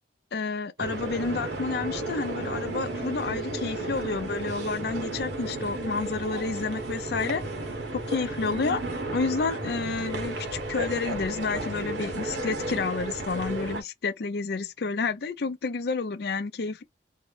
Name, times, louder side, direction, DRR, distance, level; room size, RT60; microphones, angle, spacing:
voice 1, 0.3-7.4 8.1-8.8 9.1-16.8, left 4 dB, 60° left, 0.5 m, -30 dB
sound 1, 0.8-13.8, right 2 dB, 65° right, 1.0 m, -33 dB
3.6 x 2.0 x 3.2 m
head